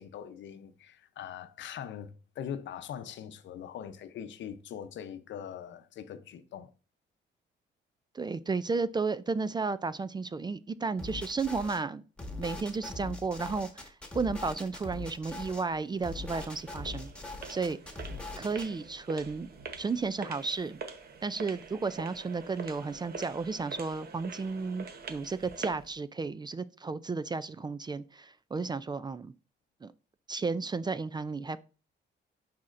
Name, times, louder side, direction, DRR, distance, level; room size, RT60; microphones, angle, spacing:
voice 1, 0.0-6.7, left 9 dB, 70° left, 0.7 m, -42 dB
voice 2, 8.1-12.0 12.4-17.1 17.5-17.8 18.4-19.5 19.8-20.8 21.2-29.3 29.8-29.9 30.3-31.6, right 4 dB, 20° right, 0.3 m, -33 dB
sound 1, 11.0-11.8 12.2-15.6 16.0-18.7, left 2 dB, 5° left, 1.6 m, -41 dB
sound 2, 15.7-25.9, right 5 dB, 50° right, 1.0 m, -45 dB
10.5 x 4.3 x 2.5 m
cardioid pair, 90°, 20 cm